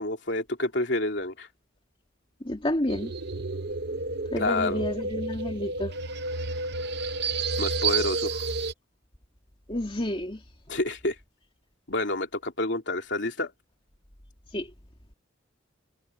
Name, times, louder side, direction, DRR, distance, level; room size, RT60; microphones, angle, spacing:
voice 1, 0.0-1.5 4.4-4.8 7.6-8.5 10.7-11.1 11.9-13.5, left 2 dB, 60° left, 3.3 m, -28 dB
voice 2, 2.4-3.1 4.3-5.9 9.7-10.4 14.5-14.7, left 1 dB, 25° left, 2.4 m, -30 dB
sound 1, 2.9-8.7, right 4 dB, 55° right, 0.8 m, -30 dB
head